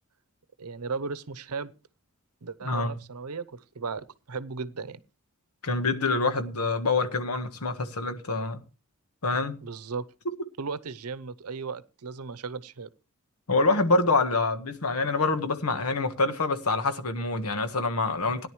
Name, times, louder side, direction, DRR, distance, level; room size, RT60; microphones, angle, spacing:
voice 1, 0.6-1.7 2.4-5.0 9.6-10.0 10.6-12.9 18.2-18.4, right 4 dB, 90° right, 0.8 m, -36 dB
voice 2, 5.6-8.6 9.2-9.6 13.5-18.5, left 3 dB, 85° left, 1.4 m, -26 dB
17.0 x 10.5 x 3.1 m
head